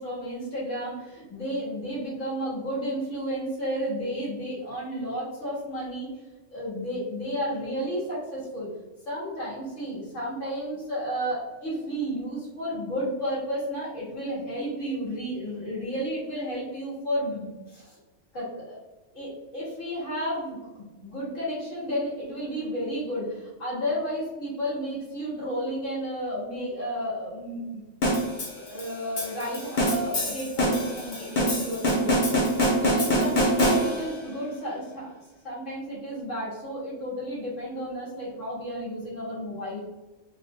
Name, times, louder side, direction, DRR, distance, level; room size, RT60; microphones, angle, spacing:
voice 1, 0.0-6.1 6.5-8.7 9.1-18.0 18.3-18.8 19.1-20.6 21.0-27.8 28.7-32.1 32.8-35.1 35.4-39.8, equal, 90° left, -8 dB, 1.8 m, -32 dB
sound 1, 28.0-34.2, equal, 45° left, 0.8 m, -25 dB
3.5 x 2.5 x 2.6 m, 1.1 s
omnidirectional pair, 1.2 m